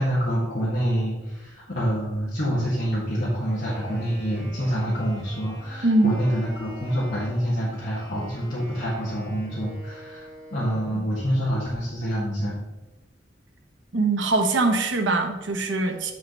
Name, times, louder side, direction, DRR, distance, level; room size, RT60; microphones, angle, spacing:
voice 1, 0.0-10.3 10.5-12.6, equal, 45° left, -8 dB, 2.1 m, -26 dB
Wind instrument woodwind instrument, 3.5-11.1, equal, 5° left, 2.8 m, -45 dB
voice 2, 13.9-16.1, right 2 dB, 85° right, 3 dB, 1.1 m, -22 dB
8.2 x 5.1 x 4.0 m, 1.1 s
head